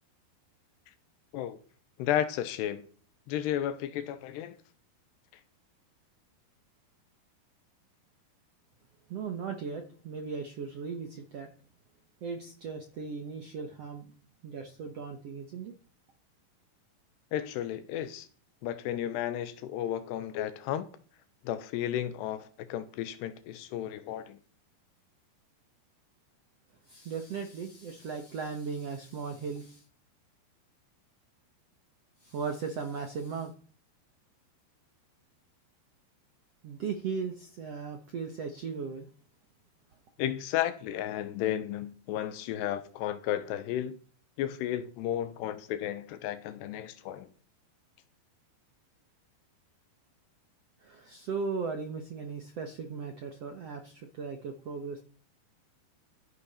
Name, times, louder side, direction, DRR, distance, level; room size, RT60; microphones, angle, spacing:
voice 1, 2.0-2.9 3.3-4.6 17.3-18.3 18.6-20.9 21.4-24.4 40.2-44.0 44.4-47.3, left 11 dB, 85° left, 3.1 m, -33 dB
voice 2, 9.1-11.5 12.2-14.1 14.4-15.7 26.9-29.8 32.2-33.5 36.6-39.1 50.8-55.0, right 5 dB, 65° right, 1.5 m, -37 dB
13.0 x 10.5 x 4.3 m
omnidirectional pair, 4.9 m